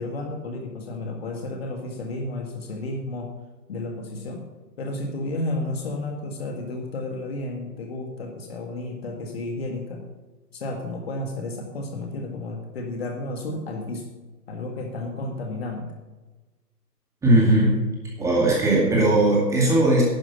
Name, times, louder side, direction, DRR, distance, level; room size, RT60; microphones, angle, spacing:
voice 1, 0.0-3.3 3.7-4.4 4.8-10.0 10.5-14.1 14.5-15.9, left 2 dB, 35° left, 3 dB, 1.8 m, -32 dB
voice 2, 17.2-17.8 18.2-20.0, right 1 dB, 5° right, -4 dB, 2.3 m, -18 dB
11.0 x 10.0 x 5.6 m, 1.2 s
figure-of-eight pair, 135°, 49 cm